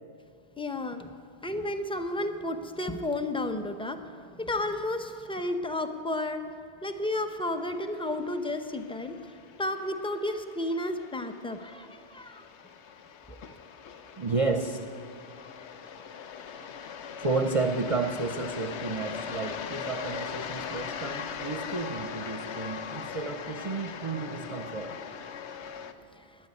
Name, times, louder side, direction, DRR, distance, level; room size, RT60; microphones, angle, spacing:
voice 1, 0.6-1.1 1.4-6.4 6.8-9.3 9.6-12.4 13.5-13.6 26.2-26.3, left 1 dB, 5° left, 7 dB, 0.6 m, -32 dB
sound 1, 7.6-25.9, left 7 dB, 90° left, 1.0 m, -40 dB
voice 2, 14.2-14.8 17.2-25.0, right 3 dB, 35° right, 5 dB, 0.6 m, -31 dB
12.0 x 9.1 x 9.6 m, 2.4 s
omnidirectional pair, 1.1 m